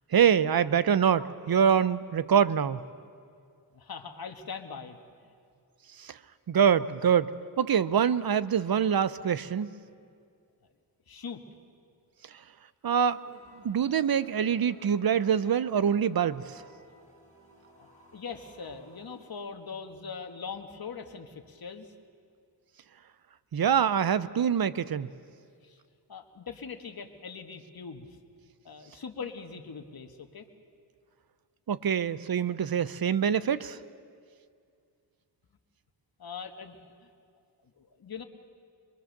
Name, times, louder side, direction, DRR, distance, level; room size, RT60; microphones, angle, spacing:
voice 1, 0.1-2.8 6.0-6.2 6.5-9.7 12.8-13.2 13.6-16.6 23.5-25.1 31.7-33.8, right 8 dB, 55° right, 15 dB, 0.7 m, -25 dB
voice 2, 3.7-5.0 11.1-11.4 17.8-17.9 18.1-21.9 25.6-25.8 26.1-28.1 28.6-30.5 36.2-36.8 37.0-37.1 37.8-38.2, left 5 dB, 55° left, 6 dB, 1.6 m, -41 dB
sound 1, 13.1-19.4, equal, 15° left, 7.2 m, -58 dB
23.0 x 23.0 x 6.7 m, 2.3 s
wide cardioid pair, 105°, 43 cm